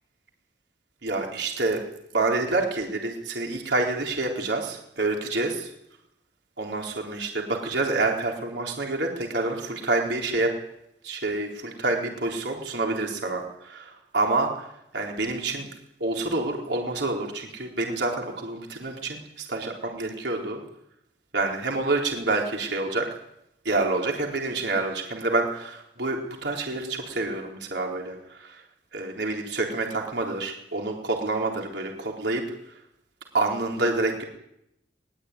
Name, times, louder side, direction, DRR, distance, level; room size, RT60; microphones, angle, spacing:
voice 1, 1.0-1.8 2.1-5.7 6.6-10.5 11.0-14.7 14.9-15.7 16.0-20.6 21.3-23.1 23.6-28.6 28.9-32.4 33.3-34.2, right 2 dB, 75° right, 1 dB, 4.0 m, -27 dB
22.0 x 20.0 x 9.7 m, 0.82 s
head